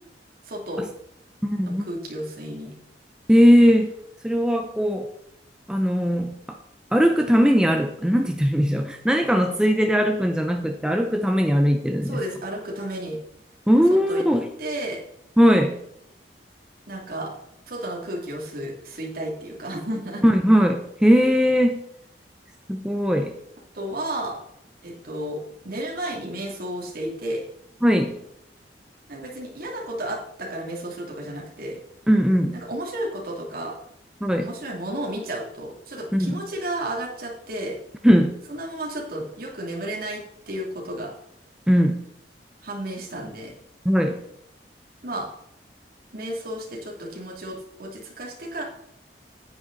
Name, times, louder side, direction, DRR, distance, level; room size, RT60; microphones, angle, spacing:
voice 1, 0.4-0.9 1.7-2.7 12.0-13.2 14.1-14.2 14.6-15.0 16.9-17.3 17.7-20.2 23.7-24.4 24.8-27.4 29.1-31.8 32.5-33.8 34.4-37.8 38.5-41.1 42.6-43.5 45.0-45.3 46.1-48.6, right 1 dB, 55° right, -2 dB, 2.7 m, -32 dB
voice 2, 1.4-1.9 3.3-3.9 4.2-5.1 5.7-6.6 6.9-12.2 13.7-14.5 15.4-15.8 20.2-21.8 22.7-23.3 27.8-28.2 32.1-32.5 34.2-34.5 36.1-36.4 38.0-38.3 41.7-42.0 43.8-44.2, equal, 5° right, 4 dB, 0.7 m, -19 dB
9.5 x 8.8 x 4.0 m, 0.74 s
head